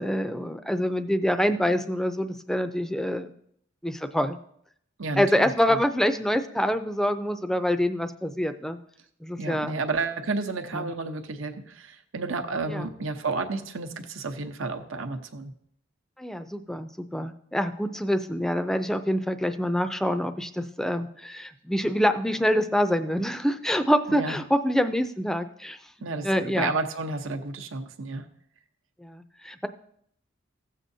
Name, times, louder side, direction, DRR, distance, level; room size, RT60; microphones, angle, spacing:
voice 1, 0.0-3.3 3.8-4.4 5.2-8.8 9.2-9.8 10.7-10.9 12.7-12.9 16.2-25.8 26.2-26.7 29.0-29.7, equal, ahead, 9 dB, 0.4 m, -26 dB
voice 2, 5.0-5.8 9.4-15.5 24.1-24.4 26.0-28.3, right 3 dB, 85° right, 6 dB, 0.8 m, -31 dB
16.0 x 7.5 x 2.7 m, 0.68 s
head